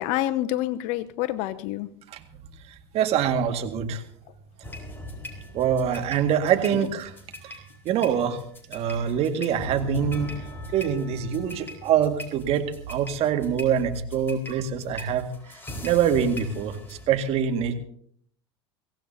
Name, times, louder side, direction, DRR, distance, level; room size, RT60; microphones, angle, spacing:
voice 1, 0.0-1.9 6.7-6.9, left 14 dB, 55° left, 12 dB, 0.9 m, -27 dB
voice 2, 2.9-4.0 5.5-7.1 7.4-8.4 8.7-10.3 10.7-17.7, right 8 dB, 45° right, 6 dB, 2.0 m, -25 dB
sound 1, 4.6-17.1, left 1 dB, 15° left, 4.7 m, -40 dB
23.0 x 17.0 x 2.8 m, 0.63 s
hypercardioid pair, 90°, 14 cm